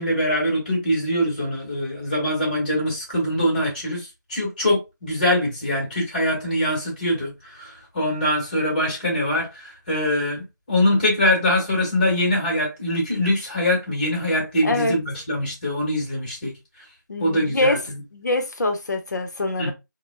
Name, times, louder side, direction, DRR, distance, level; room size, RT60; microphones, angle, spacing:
voice 1, 0.0-16.5 17.2-18.0 19.6-19.7, left 1 dB, 25° left, 1.3 m, -23 dB
voice 2, 14.6-14.9 17.1-17.8 18.1-19.7, left 2 dB, 60° left, 0.8 m, -24 dB
3.5 x 2.2 x 2.2 m
figure-of-eight pair, 170°, 11 cm